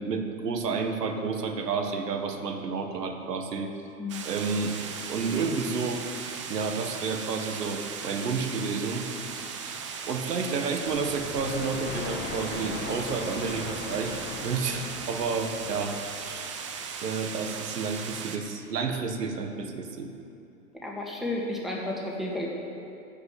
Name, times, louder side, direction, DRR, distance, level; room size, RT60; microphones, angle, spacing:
voice 1, 0.0-3.7 4.2-4.7 5.1-6.0 6.5-9.0 9.6-15.9 16.2-16.5 17.0-20.1, right 4 dB, 80° right, 5 dB, 1.6 m, -30 dB
sound 1, 4.1-18.4, right 6 dB, 20° right, 0.4 m, -37 dB
sound 2, 10.9-16.5, left 4 dB, 20° left, 1.3 m, -39 dB
voice 2, 20.8-22.5, left 2 dB, ahead, -4 dB, 1.6 m, -32 dB
14.0 x 5.1 x 8.9 m, 2.7 s
hypercardioid pair, 135°, 48 cm